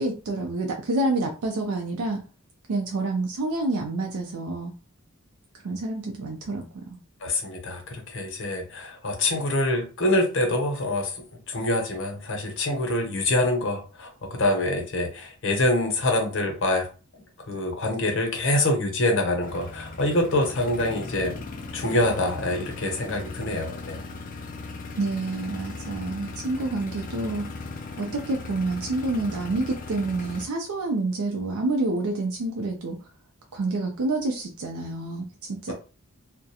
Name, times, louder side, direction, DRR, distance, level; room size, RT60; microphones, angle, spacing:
voice 1, 0.0-2.2 2.7-4.7 5.6-6.6 25.0-27.5 28.0-33.0 33.5-35.7, right 2 dB, 85° right, 2 dB, 0.4 m, -28 dB
voice 2, 7.2-11.1 11.5-16.9 17.1-21.4 21.7-24.1 35.7-35.8, left 1 dB, 60° left, 3 dB, 0.7 m, -25 dB
sound 1, 19.4-30.5, left 3 dB, 40° left, 0.3 m, -38 dB
2.3 x 2.1 x 2.7 m, 0.35 s
head